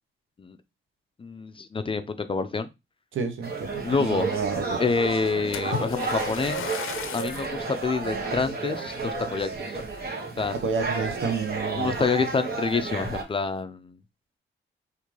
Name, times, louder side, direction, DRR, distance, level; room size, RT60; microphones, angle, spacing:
voice 1, 1.2-2.7 3.8-4.3 4.8-6.7 7.1-9.8 10.4-10.6 11.8-14.0, left 4 dB, 25° left, 0.3 m, -27 dB
voice 2, 3.1-4.8 10.6-11.9, right 5 dB, 75° right, 0.7 m, -30 dB
sound 1, 3.4-13.2, right 4 dB, 50° right, 1.0 m, -32 dB
Splash splatter, 5.5-7.6 8.2-8.5 9.1-9.2, left 8 dB, 85° left, 0.5 m, -35 dB
3.7 x 2.5 x 3.0 m
cardioid pair, 105°, 21 cm